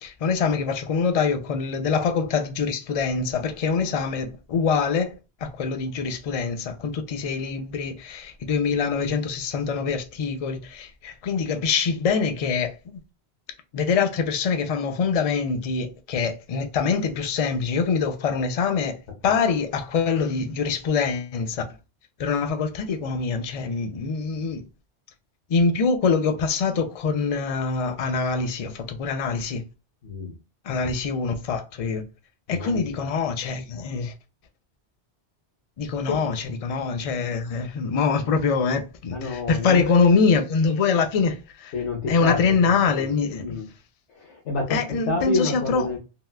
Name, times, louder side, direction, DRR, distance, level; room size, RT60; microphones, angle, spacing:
voice 1, 0.0-5.1 5.4-13.0 13.7-21.6 22.2-24.6 25.5-29.6 30.6-32.0 32.5-34.1 35.8-41.7 42.1-43.6 44.7-46.0, left 5 dB, 60° left, 0.3 m, -24 dB
voice 2, 30.0-30.3 32.5-33.0 36.1-36.2 39.1-39.9 41.7-42.7 43.0-43.1 43.4-43.7 44.1-46.0, left 3 dB, 85° left, 1.2 m, -29 dB
3.6 x 2.2 x 2.3 m
omnidirectional pair, 1.1 m